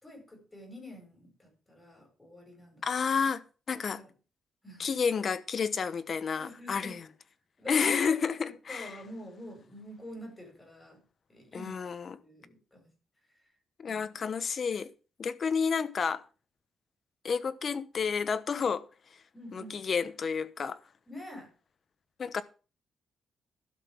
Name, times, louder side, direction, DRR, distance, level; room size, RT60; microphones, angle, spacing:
voice 1, 0.0-2.9 3.7-4.1 4.6-5.0 6.4-7.0 7.6-11.0 11.3-11.8 12.2-12.9 13.4-13.5 13.9-14.2 19.3-19.8 21.1-21.5, left 1 dB, 10° left, 5.0 m, -47 dB
voice 2, 2.8-4.0 4.8-7.1 7.7-9.0 11.5-12.2 13.8-14.9 15.2-16.2 17.2-19.2 19.5-20.8 22.2-22.4, left 6 dB, 45° left, 1.0 m, -30 dB
12.5 x 5.9 x 7.3 m
cardioid pair, 130°, 0 cm